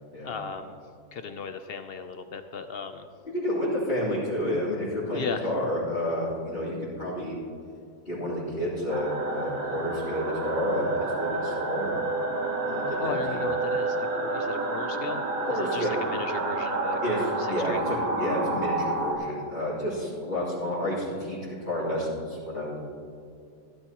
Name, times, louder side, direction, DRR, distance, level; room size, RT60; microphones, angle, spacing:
voice 1, 0.2-0.8 1.1-3.1 5.1-5.5 13.0-17.0 17.4-17.8, left 5 dB, 65° left, 8 dB, 0.6 m, -36 dB
voice 2, 3.4-7.4 8.0-12.0 12.6-13.4 15.4-15.9 17.0-22.8, left 1 dB, 35° left, -13 dB, 3.3 m, -30 dB
sound 1, 8.9-19.1, right 2 dB, 65° right, 1.8 m, -29 dB
15.5 x 12.0 x 3.0 m, 2.5 s
omnidirectional pair, 1.7 m